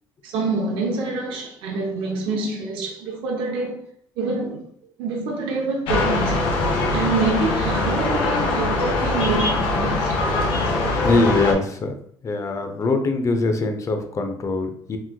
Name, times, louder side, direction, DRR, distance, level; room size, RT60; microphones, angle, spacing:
voice 1, 0.2-3.8 4.2-4.6 5.0-6.4 6.9-10.1, right 3 dB, 90° right, 0.6 m, -26 dB
sound 1, 5.9-11.5, left 2 dB, 80° left, 0.8 m, -22 dB
voice 2, 11.0-11.9 12.2-15.0, left 3 dB, 35° left, 0.5 m, -22 dB
3.3 x 3.0 x 2.2 m
cardioid pair, 100°, 9 cm